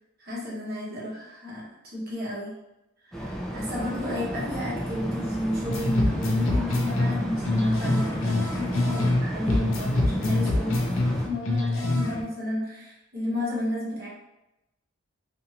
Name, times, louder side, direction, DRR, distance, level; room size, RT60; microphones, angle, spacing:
voice 1, 0.2-1.7 1.9-2.5 3.1-14.1, left 1 dB, 45° right, -7 dB, 1.0 m, -31 dB
sound 1, 3.1-11.3, equal, ahead, 0.4 m, -33 dB
sound 2, 5.7-9.2 9.5-12.2, left 2 dB, 70° left, 0.5 m, -25 dB
sound 3, 6.4-9.3, right 1 dB, 75° right, 0.6 m, -47 dB
2.6 x 2.6 x 2.8 m, 0.94 s
head